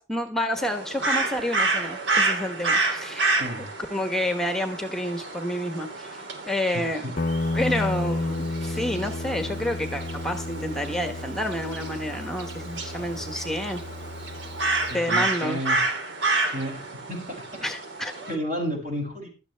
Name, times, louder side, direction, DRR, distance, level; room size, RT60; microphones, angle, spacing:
voice 1, 0.0-3.3 3.9-7.1 7.5-13.8 14.9-15.6 17.6-18.1, left 1 dB, 5° left, 7 dB, 1.0 m, -29 dB
sound 1, 0.6-18.3, right 3 dB, 85° right, 2.9 m, -30 dB
voice 2, 3.3-3.6 6.7-6.8 13.0-13.2 14.9-15.8 16.5-16.8 17.1-17.2 18.3-19.3, equal, 50° right, 0 dB, 6.8 m, -31 dB
Guitar, 7.2-15.0, left 2 dB, 45° left, 0.6 m, -32 dB
16.0 x 12.5 x 3.3 m, 0.32 s
head